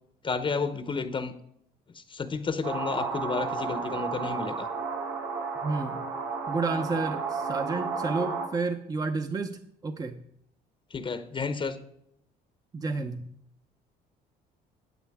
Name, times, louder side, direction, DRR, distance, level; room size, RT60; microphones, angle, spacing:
voice 1, 0.2-1.3 1.9-4.7 10.9-11.8, left 4 dB, 30° left, 11 dB, 0.8 m, -31 dB
sound 1, 2.6-8.5, right 5 dB, 85° right, 2.7 m, -32 dB
voice 2, 5.6-6.0 6.5-10.2 12.7-13.3, right 3 dB, 20° right, 7 dB, 0.7 m, -31 dB
13.0 x 9.1 x 3.6 m, 0.74 s
cardioid pair, 110°, 17 cm